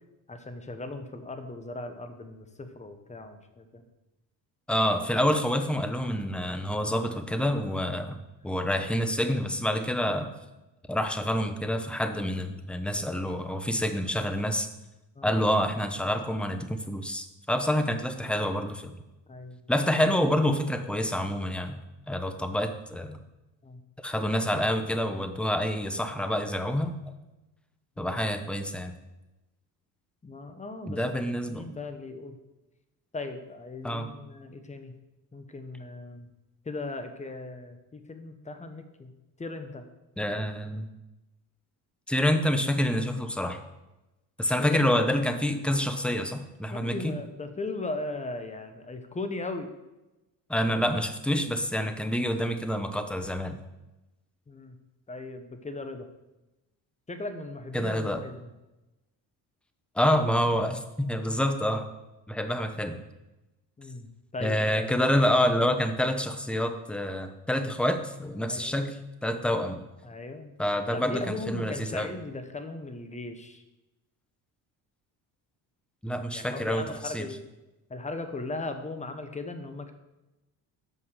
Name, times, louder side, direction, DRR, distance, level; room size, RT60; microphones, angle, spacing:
voice 1, 0.3-3.8 6.8-6.9 15.1-15.3 19.3-19.7 23.6-23.8 28.0-28.2 30.2-32.4 33.1-35.0 35.3-36.3 36.6-39.1 39.4-39.9 44.6-44.9 46.7-49.7 54.5-54.8 55.1-56.1 57.1-58.5 63.8-65.4 68.5-68.8 70.0-70.5 70.9-73.6 76.3-77.4 77.9-79.9, left 2 dB, 20° left, 7 dB, 1.1 m, -38 dB
voice 2, 4.7-8.2 8.4-10.3 10.9-14.7 15.2-18.9 19.7-21.8 22.1-23.2 24.0-27.1 28.0-28.9 30.9-31.7 33.8-34.1 40.2-40.9 42.1-43.6 44.4-47.2 50.5-53.6 57.7-58.2 59.9-61.9 62.3-63.0 64.4-69.8 70.6-72.1 76.0-77.3, equal, 5° left, 8 dB, 0.8 m, -27 dB
7.2 x 5.9 x 6.4 m, 1.0 s
supercardioid pair, 85°, 39 cm